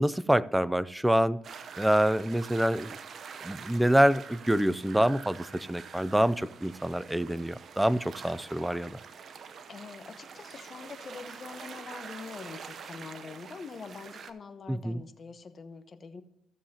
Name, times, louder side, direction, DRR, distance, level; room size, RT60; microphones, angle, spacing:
voice 1, 0.0-1.4 1.8-3.0 3.4-9.0 14.7-15.0, right 1 dB, 5° right, 16 dB, 0.4 m, -26 dB
sound 1, 1.4-14.3, right 6 dB, 55° right, 0.8 m, -46 dB
voice 2, 9.7-16.2, left 5 dB, 45° left, 10 dB, 1.0 m, -44 dB
15.5 x 7.2 x 2.9 m, 0.85 s
cardioid pair, 90°, 0 cm